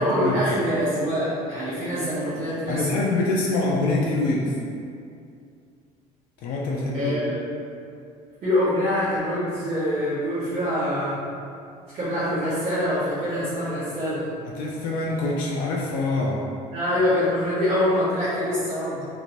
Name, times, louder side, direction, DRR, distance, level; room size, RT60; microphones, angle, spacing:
voice 1, 0.0-2.9 6.9-7.5 8.4-11.2 11.9-14.3 16.7-19.1, left 1 dB, 40° right, -12 dB, 0.8 m, -25 dB
voice 2, 2.7-4.5 6.4-7.2 14.6-16.5, left 2 dB, 75° left, -3 dB, 0.4 m, -25 dB
3.0 x 2.5 x 2.9 m, 2.4 s
cardioid pair, 155°, 15 cm